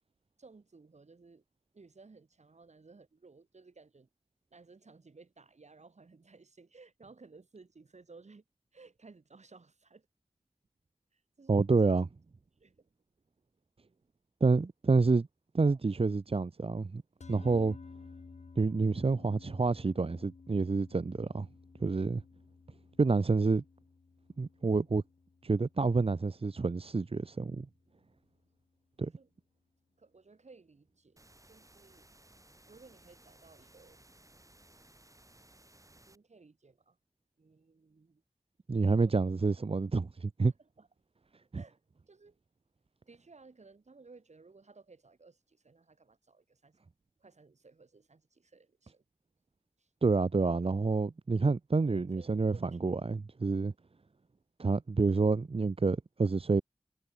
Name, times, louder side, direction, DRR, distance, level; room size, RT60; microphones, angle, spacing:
voice 1, 0.4-1.4 1.7-4.1 4.5-8.4 8.7-10.1 11.1-12.1 12.6-12.9 15.6-16.1 29.2-29.3 30.0-32.1 32.7-34.0 36.1-37.0 37.4-38.2 38.9-39.2 40.4-40.9 41.6-41.8 42.1-42.4 43.1-46.8 47.2-49.1 49.8-49.9 51.8-52.8, right 4 dB, 85° right, 3.6 m, -58 dB
voice 2, 11.5-12.0 14.4-15.3 15.5-17.0 17.3-17.8 18.6-21.5 21.8-22.2 23.0-23.6 24.4-25.0 25.4-27.7 29.0-29.1 38.7-40.5 41.5-41.6 50.0-53.7 54.6-56.6, right 4 dB, 55° right, 0.8 m, -28 dB
sound 1, 17.2-27.7, left 4 dB, 85° left, 1.3 m, -54 dB
sound 2, 31.2-36.2, right 1 dB, 30° right, 4.3 m, -60 dB
wide cardioid pair, 50°, 11 cm